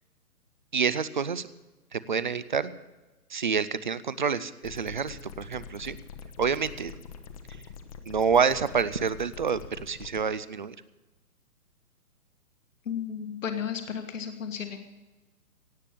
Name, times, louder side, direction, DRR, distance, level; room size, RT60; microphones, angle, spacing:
voice 1, 0.7-1.5 1.9-2.7 3.3-6.0 6.4-6.9 8.1-10.8, right 6 dB, 35° right, 16 dB, 0.5 m, -28 dB
sound 1, 4.6-10.2, left 6 dB, 25° left, 0.9 m, -45 dB
voice 2, 12.8-14.8, left 8 dB, 55° left, 6 dB, 1.7 m, -33 dB
17.5 x 8.3 x 7.2 m, 1.1 s
figure-of-eight pair, 130°, 45 cm